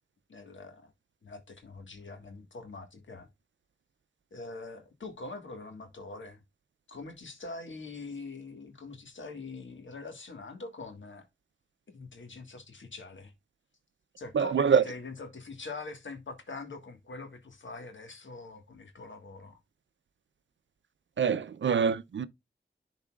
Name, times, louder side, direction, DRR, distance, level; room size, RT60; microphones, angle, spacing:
voice 1, 0.3-0.9 1.2-3.3 4.3-6.4 6.9-11.3 11.9-13.3 14.2-19.6, left 3 dB, 85° left, 1.6 m, -43 dB
voice 2, 14.3-14.8 21.2-22.3, right 6 dB, 80° right, 0.5 m, -25 dB
11.0 x 4.1 x 2.3 m
wide cardioid pair, 60°, 19 cm